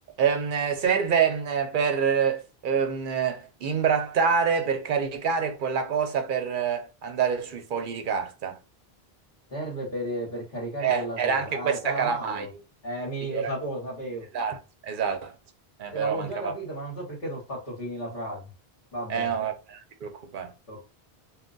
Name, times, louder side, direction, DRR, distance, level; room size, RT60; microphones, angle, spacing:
voice 1, 0.2-8.6 10.8-12.5 13.3-13.5 14.3-15.3 15.8-16.5 19.1-20.5, right 7 dB, 60° right, 0.7 m, -26 dB
voice 2, 9.5-12.5 12.8-14.3 15.9-18.5 18.9-19.3 20.7-20.9, right 1 dB, 55° left, 1.1 m, -33 dB
2.2 x 2.2 x 3.8 m
omnidirectional pair, 1.0 m